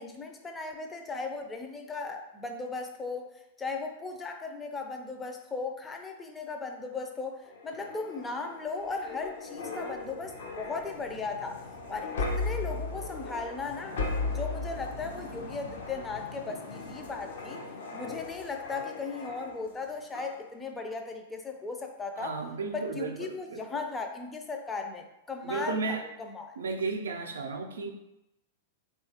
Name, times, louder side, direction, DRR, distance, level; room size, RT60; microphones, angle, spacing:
voice 1, 0.0-11.6 11.9-14.0 14.3-17.6 17.9-22.3 22.7-26.5, left 4 dB, 15° left, 4 dB, 0.3 m, -37 dB
sound 1, 7.5-19.8 20.1-20.4, left 3 dB, 75° left, 0.5 m, -37 dB
voice 2, 22.2-23.6 25.4-26.1 26.6-27.9, right 4 dB, 85° right, 4 dB, 0.4 m, -34 dB
2.9 x 2.3 x 2.8 m, 0.88 s
hypercardioid pair, 115°, 0 cm